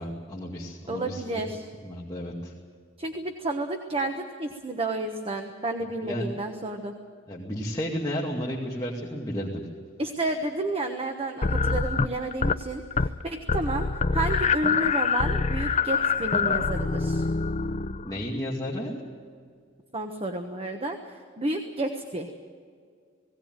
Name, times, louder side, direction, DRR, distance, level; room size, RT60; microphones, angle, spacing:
voice 1, 0.0-1.4 1.8-2.5 6.0-6.3 7.3-9.6 18.0-18.9, equal, 20° left, -4 dB, 2.3 m, -32 dB
voice 2, 0.9-1.7 3.0-6.9 10.0-17.3 19.9-22.3, right 2 dB, 30° right, 5 dB, 1.2 m, -31 dB
sound 1, 11.4-12.6 12.9-13.2 13.5-18.2, left 4 dB, 35° left, 0.6 m, -25 dB
19.0 x 17.5 x 9.1 m, 2.1 s
head